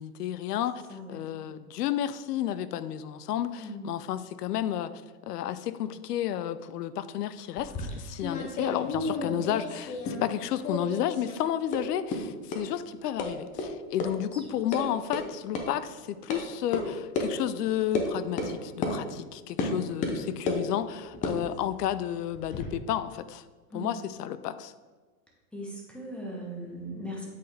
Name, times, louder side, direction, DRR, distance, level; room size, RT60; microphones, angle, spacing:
voice 1, 0.0-4.9 5.2-23.4 23.7-24.7, left 11 dB, 85° left, 14 dB, 0.6 m, -32 dB
voice 2, 0.9-1.5 3.6-3.9 9.2-9.5 14.1-14.3 19.6-19.8 23.7-23.9 25.5-27.3, equal, ahead, -2 dB, 1.0 m, -39 dB
sound 1, 7.5-10.4 10.6-11.4 11.7-11.8 12.1-12.2 12.5-12.6 13.2-13.3 13.6-13.7 14.0-14.1 14.4-14.8 15.1-15.2 15.5-15.6 16.3-16.4 16.7-16.8 17.1-17.3 17.9-18.1 18.4-18.5 18.8-18.9 19.6-19.7 20.0-20.6 21.1-22.7, left 3 dB, 20° left, 0.5 m, -32 dB
8.1 x 4.0 x 3.4 m, 1.3 s
hypercardioid pair, 130°, 46 cm